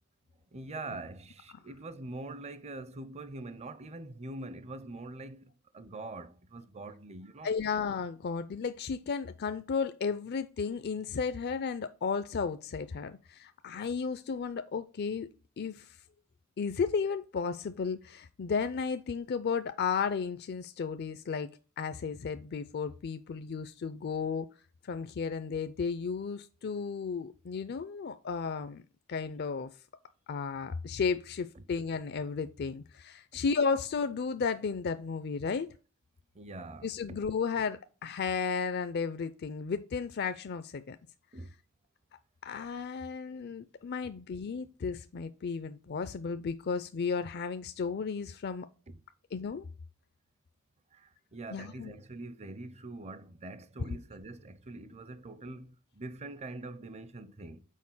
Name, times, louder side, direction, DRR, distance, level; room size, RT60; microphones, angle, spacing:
voice 1, 0.5-7.5 31.6-31.7 35.5-35.6 36.3-37.2 41.3-41.5 48.9-49.0 50.9-57.6, right 2 dB, 30° right, 0.6 m, -44 dB
voice 2, 7.4-15.3 15.6-15.9 16.6-21.5 21.8-24.5 24.8-28.8 29.1-29.7 30.3-35.7 36.8-41.0 42.4-48.7 49.3-49.6 51.5-51.9, left 5 dB, 50° left, 0.4 m, -33 dB
6.4 x 4.7 x 5.5 m
head